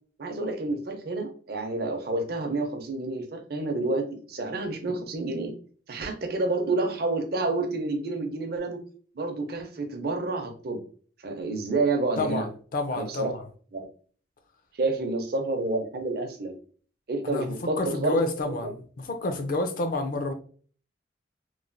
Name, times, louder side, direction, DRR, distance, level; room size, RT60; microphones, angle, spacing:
voice 1, 0.2-5.5 5.9-8.8 9.1-10.8 11.2-12.5 12.9-13.3 13.7-13.9 14.8-16.6 17.1-18.2 18.6-18.7, right 2 dB, 60° right, 0.5 m, -29 dB
voice 2, 12.2-13.4 17.2-20.3, left 2 dB, 50° left, 0.4 m, -29 dB
3.1 x 2.1 x 2.5 m
head